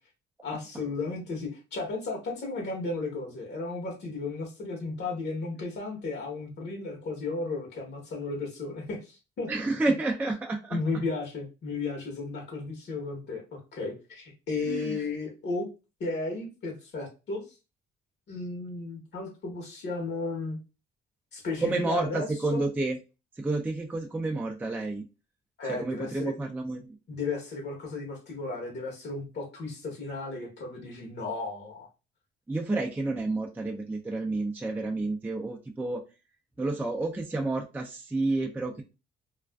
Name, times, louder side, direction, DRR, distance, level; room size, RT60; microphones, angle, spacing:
voice 1, 0.4-9.5 9.8-9.9 10.7-15.7 16.0-17.4 18.3-20.6 21.3-22.3 22.5-22.6 25.6-26.3 27.1-31.9, left 3 dB, 60° left, 0 dB, 1.0 m, -34 dB
voice 2, 9.5-10.8 14.6-15.0 21.6-23.0 23.3-25.0 25.7-27.0 32.5-36.0 36.6-38.8, right 2 dB, 10° right, 1 dB, 0.4 m, -30 dB
2.4 x 2.3 x 2.2 m, 0.29 s
cardioid pair, 90°, 20 cm